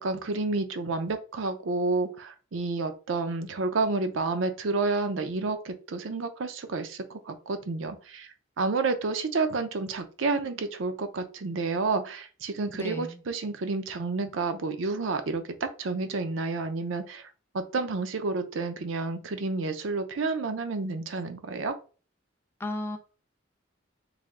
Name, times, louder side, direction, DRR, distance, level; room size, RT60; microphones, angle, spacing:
voice 1, 0.0-8.3 8.6-17.3 17.5-21.7, right 3 dB, 85° right, 8 dB, 0.6 m, -30 dB
voice 2, 12.7-13.2 22.6-23.0, left 1 dB, 10° left, 6 dB, 0.5 m, -34 dB
3.4 x 2.6 x 3.6 m, 0.36 s
head